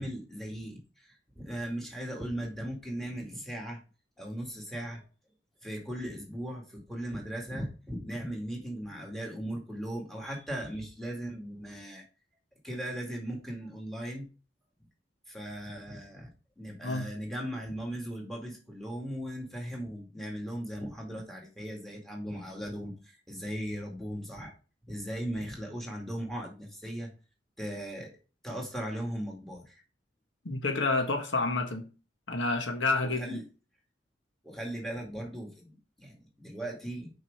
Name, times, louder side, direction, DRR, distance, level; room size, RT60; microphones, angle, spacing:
voice 1, 0.0-3.8 4.2-5.0 5.6-12.0 12.6-14.3 15.3-16.3 16.6-24.5 24.8-27.1 27.6-28.1 28.4-29.8 33.0-33.4 34.4-37.1, equal, ahead, 2.2 m, -38 dB
voice 2, 30.4-31.9 32.3-33.4, left 3 dB, 85° left, 1.5 m, -29 dB
6.3 x 5.3 x 4.9 m
head